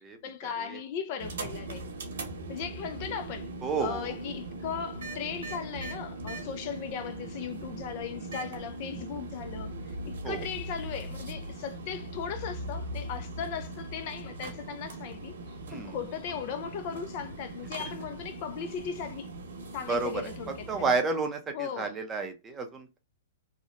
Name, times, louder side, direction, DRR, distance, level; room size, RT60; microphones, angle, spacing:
voice 1, 0.2-1.8 2.5-3.5 3.8-19.3 19.7-20.7 21.5-21.9, left 7 dB, 40° left, 0.3 m, -37 dB
sound 1, 1.2-21.0, right 2 dB, 85° right, 0.9 m, -40 dB
voice 2, 3.6-4.1 10.2-10.5 15.7-15.9 19.9-20.3 20.7-23.0, right 4 dB, 15° right, 0.5 m, -31 dB
2.8 x 2.0 x 2.4 m
hypercardioid pair, 160°, 0 cm